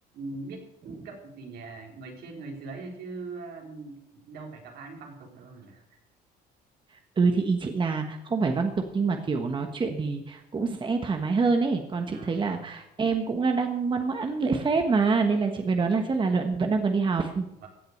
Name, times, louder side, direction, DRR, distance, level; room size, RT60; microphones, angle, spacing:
voice 1, 0.1-6.0 12.1-12.7 17.6-17.7, right 3 dB, 70° right, 1 dB, 4.1 m, -41 dB
voice 2, 7.2-17.4, right 4 dB, 30° right, 5 dB, 1.4 m, -26 dB
16.0 x 7.9 x 6.6 m, 0.88 s
cardioid pair, 110°, 17 cm